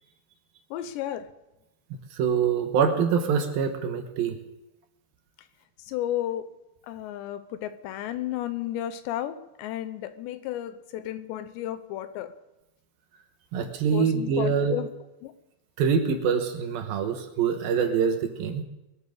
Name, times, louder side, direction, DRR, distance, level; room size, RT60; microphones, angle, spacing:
voice 1, 0.7-1.3 5.9-6.5 6.9-12.3 13.9-14.9 15.2-15.3, left 12 dB, 85° left, 12 dB, 3.1 m, -33 dB
voice 2, 2.1-4.4 13.5-14.7 15.8-18.6, right 6 dB, 70° right, 5 dB, 2.7 m, -25 dB
22.0 x 8.4 x 6.6 m, 0.95 s
omnidirectional pair, 4.9 m